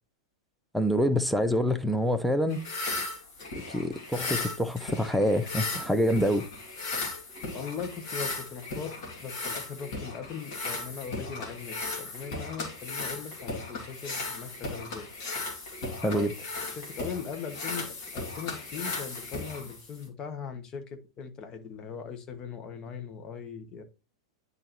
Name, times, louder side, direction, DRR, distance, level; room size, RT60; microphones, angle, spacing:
voice 1, 0.7-2.6 3.6-6.5 16.0-16.3, equal, ahead, 0.7 m, -26 dB
sound 1, 2.5-20.1, left 3 dB, 55° left, 2.4 m, -36 dB
voice 2, 7.5-15.1 16.0-16.2 16.8-23.8, left 6 dB, 30° left, 1.2 m, -40 dB
10.0 x 4.0 x 3.0 m
figure-of-eight pair, 95°, 2 cm